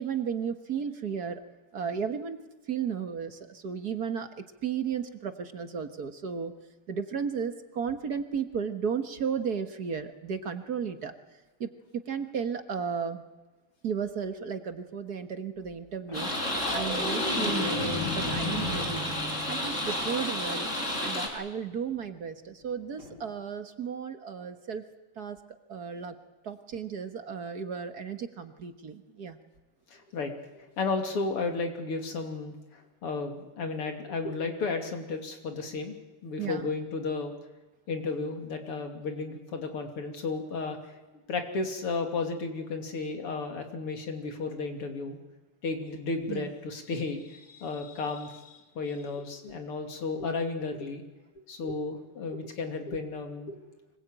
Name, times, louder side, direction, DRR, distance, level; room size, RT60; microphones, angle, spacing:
voice 1, 0.0-1.4 1.7-2.4 2.7-4.3 4.6-6.5 6.9-11.1 11.6-11.7 11.9-13.2 13.8-16.3 16.7-19.1 19.5-20.7 21.0-24.8 25.2-25.4 25.7-26.1 26.4-29.4 36.4-36.7 46.3-46.5, right 7 dB, 50° right, 8 dB, 1.7 m, -34 dB
sound 1, 16.1-20.6 23.0-23.2, left 2 dB, 55° left, 6.5 m, -35 dB
sound 2, 16.1-21.3, left 1 dB, 30° left, 5.1 m, -31 dB
voice 2, 29.9-36.0 36.2-37.3 37.9-41.0 41.3-45.2 45.6-51.0 51.5-53.6, left 3 dB, 85° left, 5 dB, 3.7 m, -33 dB
24.5 x 21.5 x 9.1 m, 1.1 s
omnidirectional pair, 2.4 m